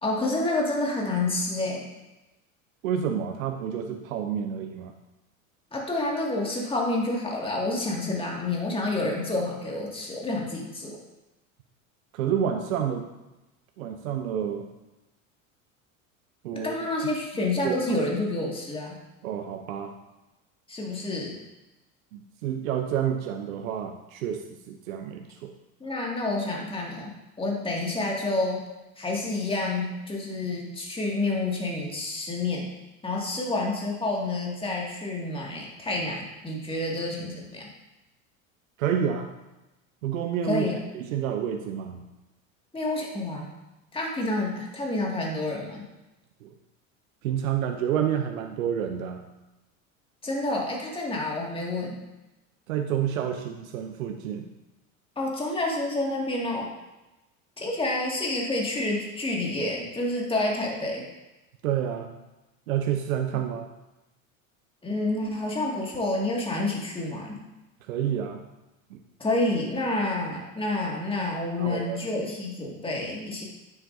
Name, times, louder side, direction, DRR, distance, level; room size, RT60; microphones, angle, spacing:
voice 1, 0.0-1.8 5.7-11.0 16.5-18.9 20.7-21.4 25.8-27.1 27.4-28.6 29.0-32.7 33.0-37.7 40.4-40.8 42.7-43.4 43.9-45.8 50.2-52.0 55.2-56.7 57.6-61.0 64.8-67.4 69.2-73.4, left 2 dB, 15° left, -2 dB, 2.1 m, -29 dB
voice 2, 2.8-4.9 12.1-13.1 13.8-14.7 16.4-16.7 17.6-18.0 19.2-19.9 22.1-25.5 38.8-39.3 40.0-40.7 40.9-42.0 46.4-46.5 47.2-49.2 52.7-54.5 61.6-62.1 62.7-63.7 67.8-68.4 68.9-69.0 71.6-72.1, right 9 dB, 80° right, 5 dB, 0.7 m, -29 dB
9.2 x 7.3 x 2.7 m, 1.0 s
hypercardioid pair, 85°, 41 cm